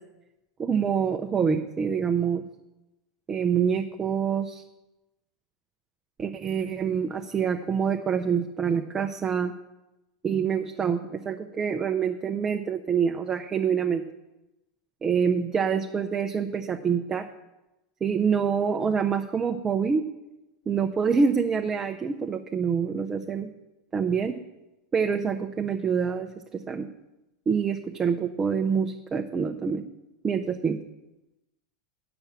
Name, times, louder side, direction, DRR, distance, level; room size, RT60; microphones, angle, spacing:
voice 1, 0.6-2.4 3.3-4.6 6.2-9.5 10.2-14.1 15.0-17.3 18.0-20.0 20.7-23.5 23.9-24.4 24.9-26.9 27.5-29.8 30.2-30.8, right 6 dB, 25° right, 5 dB, 0.7 m, -26 dB
9.0 x 6.9 x 7.2 m, 0.98 s
hypercardioid pair, 90°, 2 cm